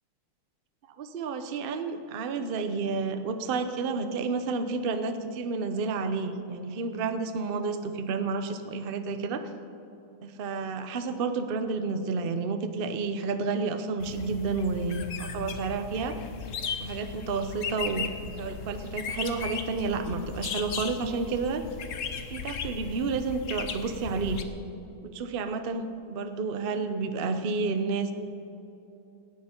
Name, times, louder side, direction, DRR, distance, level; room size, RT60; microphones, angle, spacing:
voice 1, 1.0-9.4 10.2-16.2 16.8-18.1 18.4-21.6 22.3-24.4 25.0-28.1, right 4 dB, 80° right, 8 dB, 0.5 m, -30 dB
sound 1, 14.0-24.4, left 6 dB, 55° left, 0.9 m, -37 dB
18.0 x 13.5 x 4.5 m, 2.9 s
omnidirectional pair, 2.3 m